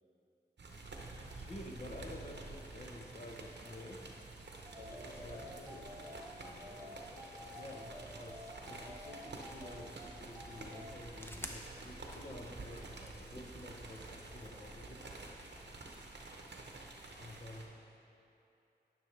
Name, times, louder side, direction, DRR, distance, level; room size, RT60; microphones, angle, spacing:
sound 1, 0.6-17.7, right 2 dB, 75° right, 0.8 m, -50 dB
voice 1, 1.3-4.0 5.2-5.4 5.7-5.8 7.5-15.0 17.2-17.7, left 1 dB, 40° left, 1 dB, 0.9 m, -50 dB
sound 2, 4.6-10.9, left 1 dB, 15° right, 1.0 m, -51 dB
voice 2, 4.8-7.9, equal, 65° left, -5 dB, 1.6 m, -54 dB
sound 3, 11.1-16.3, left 1 dB, 10° left, 0.7 m, -53 dB
10.0 x 6.0 x 3.2 m, 2.8 s
cardioid pair, 50°, 18 cm